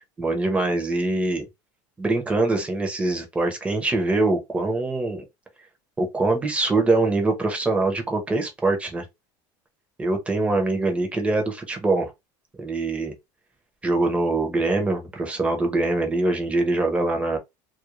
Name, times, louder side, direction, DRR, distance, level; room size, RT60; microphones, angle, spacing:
voice 1, 0.2-1.4 2.0-5.2 6.0-9.1 10.0-12.1 12.6-13.1 13.8-17.4, right 2 dB, 10° right, 0.7 m, -23 dB
2.4 x 2.1 x 3.0 m
cardioid pair, 150°, 10 cm